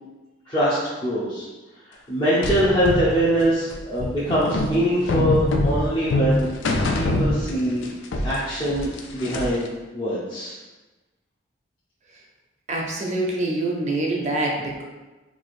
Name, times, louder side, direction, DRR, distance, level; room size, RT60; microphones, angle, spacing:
voice 1, 0.5-1.5 2.1-6.5 7.0-7.9 8.2-10.6, right 1 dB, 25° left, -11 dB, 0.7 m, -23 dB
sound 1, 2.4-9.7, left 2 dB, 80° left, 0.4 m, -24 dB
voice 2, 12.7-14.8, right 2 dB, 40° right, -1 dB, 0.6 m, -25 dB
4.6 x 2.4 x 2.5 m, 1.2 s
head